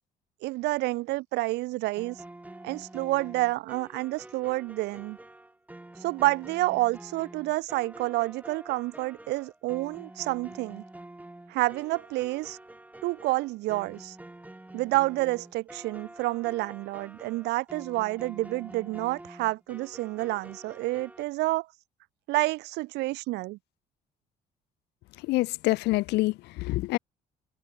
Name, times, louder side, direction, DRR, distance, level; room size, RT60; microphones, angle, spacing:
voice 1, 0.4-2.2 2.6-5.2 6.0-10.8 11.5-12.6 13.0-14.2 14.7-21.7 22.3-23.6, right 20 dB, 90° right, 1.4 m, -29 dB
sound 1, 2.0-21.3, right 1 dB, 10° right, 3.6 m, -47 dB
voice 2, 25.2-27.0, left 20 dB, 85° left, 0.7 m, -26 dB
cardioid pair, 110°, 17 cm